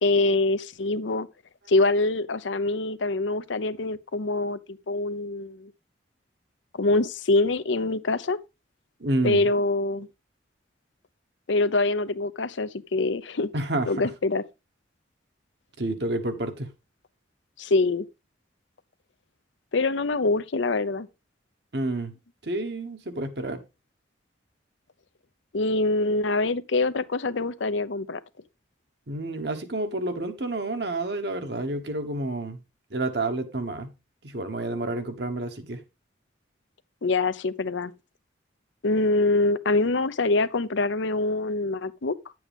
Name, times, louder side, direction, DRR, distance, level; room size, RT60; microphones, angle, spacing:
voice 1, 0.0-1.3 1.7-5.7 6.7-8.4 9.2-10.1 11.5-13.5 13.9-14.4 17.6-18.1 19.7-21.1 25.5-28.2 37.0-37.9 38.8-42.1, left 2 dB, 75° left, 0.7 m, -24 dB
voice 2, 9.0-9.5 13.5-14.1 15.8-16.7 21.7-22.1 22.4-23.6 29.1-32.6 32.9-33.9 34.2-35.8, right 2 dB, 60° right, 1.3 m, -29 dB
10.5 x 7.8 x 3.5 m
head